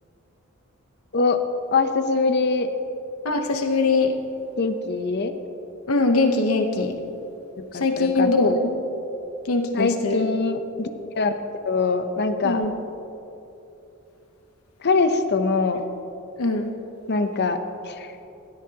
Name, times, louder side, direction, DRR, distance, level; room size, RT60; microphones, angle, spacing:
voice 1, 1.7-2.7 4.6-5.3 7.7-8.3 9.7-10.9 11.2-11.3 11.7-12.6 14.8-15.8 17.1-17.6 17.9-18.2, left 4 dB, 50° left, 8 dB, 0.7 m, -23 dB
voice 2, 3.2-4.1 5.9-7.0 7.7-8.7 9.5-10.3 12.4-12.7 16.4-16.7, left 3 dB, 85° left, 5 dB, 0.9 m, -22 dB
16.5 x 13.0 x 2.9 m, 2.9 s
head